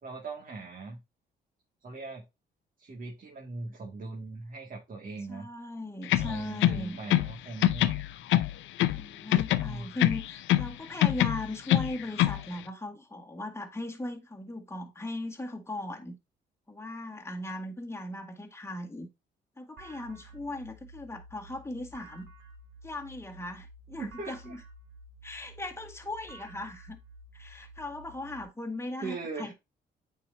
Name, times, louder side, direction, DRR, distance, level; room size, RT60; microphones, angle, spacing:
voice 1, 0.0-1.0 1.8-2.2 2.8-5.5 6.2-8.0 9.5-10.0 24.0-24.5 29.0-29.5, right 3 dB, 45° right, 2.1 m, -40 dB
voice 2, 5.3-7.0 8.9-16.2 16.7-19.1 19.6-22.3 22.8-24.6 25.2-27.0 27.3-29.5, left 2 dB, 15° left, 1.8 m, -38 dB
sound 1, 6.0-7.4 7.6-9.0 9.3-10.7 11.0-12.4, left 14 dB, 80° left, 0.5 m, -25 dB
sound 2, 19.8-28.4, right 1 dB, 85° right, 1.8 m, -51 dB
8.5 x 4.8 x 2.7 m
cardioid pair, 75°, 19 cm